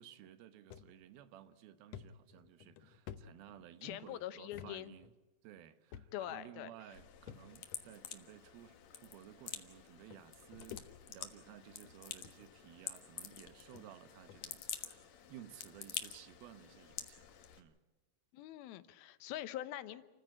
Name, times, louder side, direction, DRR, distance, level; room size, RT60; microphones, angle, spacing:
voice 1, 0.0-5.1 5.4-10.8 11.1-15.0 15.3-17.3 17.6-17.8, right 11 dB, 85° right, 3.0 m, -56 dB
sound 1, 0.7-0.9 1.3-1.4 1.9-4.0 4.5-4.7 5.0-5.1 5.9-6.4 7.3-7.8 8.7-8.8 9.8-9.9 10.1-11.3 11.7-12.0 12.8-12.9 13.4-13.5 13.7-13.9 14.3-14.5, left 9 dB, 75° left, 1.6 m, -52 dB
voice 2, 3.8-4.9 6.1-6.7 18.3-20.1, left 12 dB, 90° left, 2.8 m, -44 dB
sound 2, 6.9-17.6, left 9 dB, 60° left, 2.3 m, -48 dB
29.5 x 15.0 x 8.7 m
omnidirectional pair, 4.2 m